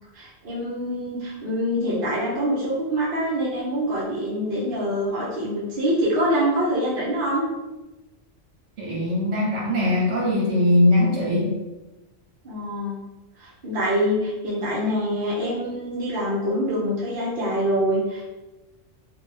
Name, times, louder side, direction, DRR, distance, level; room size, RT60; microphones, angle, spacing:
voice 1, 0.1-7.4 12.4-13.0 13.4-18.3, equal, 55° right, -7 dB, 0.7 m, -25 dB
voice 2, 8.8-11.5, left 1 dB, 75° right, -4 dB, 1.3 m, -20 dB
3.0 x 2.2 x 3.2 m, 1.1 s
omnidirectional pair, 1.3 m